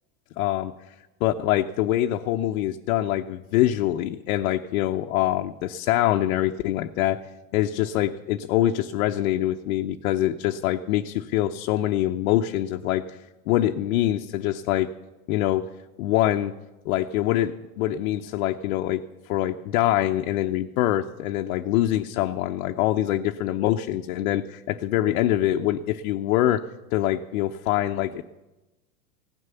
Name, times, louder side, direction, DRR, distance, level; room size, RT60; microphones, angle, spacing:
voice 1, 0.4-0.7 1.2-7.2 7.5-13.2 13.5-14.9 15.3-15.6 16.0-16.5 16.8-26.6 26.9-28.2, left 13 dB, 60° left, 4 dB, 0.8 m, -24 dB
16.5 x 9.8 x 6.9 m, 1.0 s
supercardioid pair, 135°, 47 cm